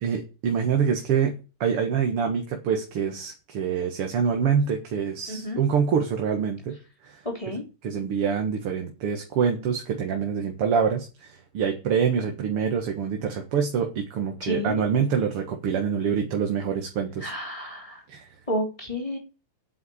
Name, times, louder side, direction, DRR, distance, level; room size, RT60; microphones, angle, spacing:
voice 1, 0.0-1.3 1.6-6.8 7.0-7.2 7.8-17.3 18.1-18.3, right 7 dB, 85° right, 4 dB, 2.7 m, -25 dB
voice 2, 5.3-5.6 7.2-7.6 14.4-14.8 17.2-18.0 18.5-19.2, left 1 dB, 15° left, 1 dB, 3.4 m, -31 dB
9.4 x 7.9 x 8.7 m, 0.31 s
omnidirectional pair, 2.4 m